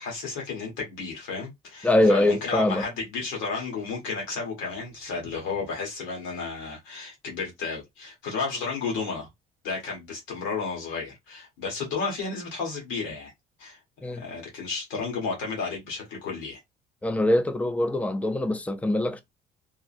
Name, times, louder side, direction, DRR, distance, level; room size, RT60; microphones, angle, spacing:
voice 1, 0.0-9.3 9.6-13.3 13.6-16.6, left 4 dB, 85° left, 1.5 m, -32 dB
voice 2, 1.8-2.8 14.0-14.2 17.0-19.2, left 1 dB, 5° left, 0.5 m, -23 dB
3.6 x 2.0 x 2.5 m
supercardioid pair, 75°, 20 cm